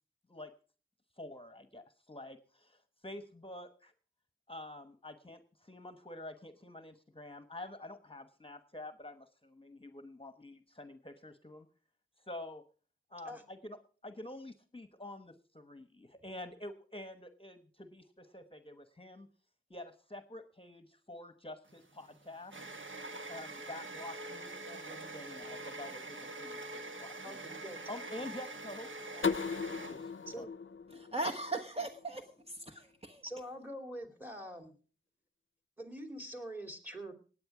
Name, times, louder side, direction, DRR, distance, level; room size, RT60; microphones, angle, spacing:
voice 1, 1.2-3.9 4.5-11.7 12.3-12.6 13.1-13.8 14.0-19.3 19.7-22.5 23.3-27.4 27.9-29.2 29.7-30.4, left 1 dB, 25° left, 9 dB, 1.0 m, -48 dB
sound 1, 21.7-30.4, right 2 dB, 75° right, 1.3 m, -45 dB
voice 2, 27.2-27.8 30.3-30.5 33.2-34.7 35.8-37.1, equal, 10° right, 6 dB, 2.9 m, -44 dB
sound 2, 29.2-32.0, left 5 dB, 80° left, 0.5 m, -37 dB
voice 3, 30.9-33.2, right 2 dB, 30° right, 2 dB, 1.3 m, -39 dB
18.5 x 8.8 x 4.9 m, 0.40 s
wide cardioid pair, 40°, 20 cm